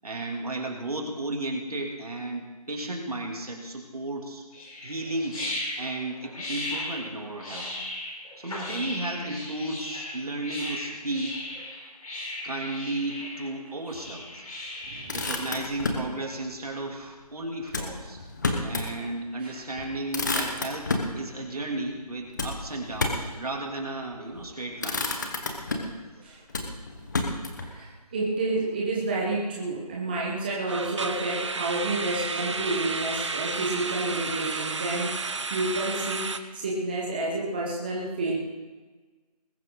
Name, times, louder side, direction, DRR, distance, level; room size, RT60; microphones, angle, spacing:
voice 1, 0.0-4.4 4.8-5.4 5.8-7.7 8.4-11.3 12.4-14.5 15.1-18.2 18.6-25.1, right 2 dB, 65° right, 1 dB, 2.9 m, -34 dB
sound 1, 4.5-15.5, left 1 dB, 60° left, 4.6 m, -37 dB
Motor vehicle (road), 14.8-16.1 17.7-18.9 19.3-19.4 19.8-21.2 22.4-23.4 24.2-24.5 24.8-26.0 26.5-27.7, left 3 dB, 30° left, 1.2 m, -30 dB
voice 2, 14.9-15.2 19.4-19.6 26.2-26.4 27.6-38.4, right 2 dB, 15° right, -4 dB, 1.2 m, -30 dB
sound 2, 24.5-24.8 25.0-25.2 25.7-25.8 30.7-36.4, right 4 dB, 45° right, 0.8 m, -32 dB
20.5 x 11.0 x 3.9 m, 1.3 s
figure-of-eight pair, 170°, 20 cm